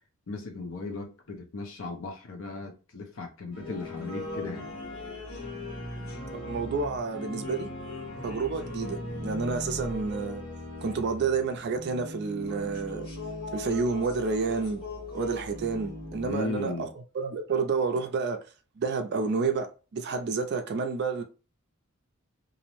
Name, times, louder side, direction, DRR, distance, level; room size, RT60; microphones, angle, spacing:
voice 1, 0.3-4.7 16.2-16.9, left 3 dB, 65° left, 0.5 m, -36 dB
sound 1, 3.5-16.4, left 1 dB, 85° left, 1.4 m, -38 dB
voice 2, 6.3-7.7 8.2-10.4 10.8-13.1 13.5-14.8 15.1-16.7 17.1-18.4 18.8-21.2, right 4 dB, 50° right, 0.4 m, -29 dB
2.6 x 2.0 x 2.9 m
head